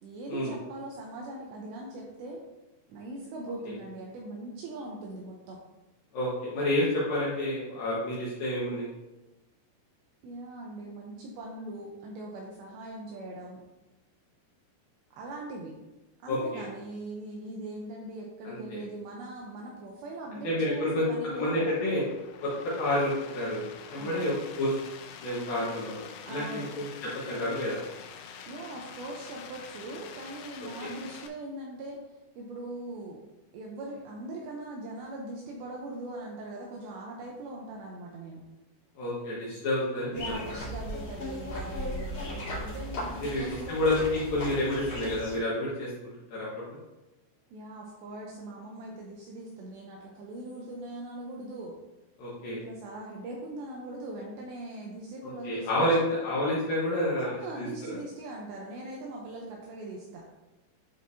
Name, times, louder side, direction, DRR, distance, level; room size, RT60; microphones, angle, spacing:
voice 1, 0.0-2.4 2.9-5.6 10.2-13.6 15.2-15.8 16.2-21.7 24.0-24.3 26.2-26.7 28.5-32.0 32.4-33.2 33.5-38.4 40.1-43.8 47.5-51.8 52.6-56.1 57.2-60.3, right 2 dB, 80° right, -1 dB, 2.6 m, -41 dB
voice 2, 6.1-8.9 16.3-16.7 18.4-18.8 20.4-21.1 21.3-22.0 22.4-22.5 22.8-23.6 23.9-24.7 25.2-27.8 30.8-30.9 39.0-40.4 43.2-45.9 46.3-46.8 52.2-52.6 55.2-57.3 57.6-58.0, left 1 dB, 65° left, -7 dB, 2.4 m, -29 dB
sound 1, 21.3-31.3, left 7 dB, 85° left, 3.1 m, -46 dB
sound 2, 40.1-45.4, left 1 dB, 45° left, 2.4 m, -37 dB
11.5 x 4.7 x 2.7 m, 1.0 s
omnidirectional pair, 5.8 m